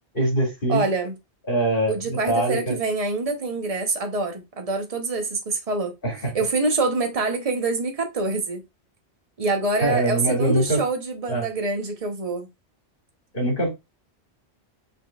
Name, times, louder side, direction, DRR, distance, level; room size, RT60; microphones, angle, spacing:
voice 1, 0.1-0.8 1.5-2.8 6.0-6.3 9.8-10.8 11.3-11.4 13.3-13.7, right 1 dB, 50° left, 2.5 m, -23 dB
voice 2, 0.7-1.1 1.9-5.9 6.3-8.6 9.4-12.5, right 3 dB, 35° right, 1.0 m, -25 dB
5.5 x 3.9 x 2.4 m
omnidirectional pair, 1.1 m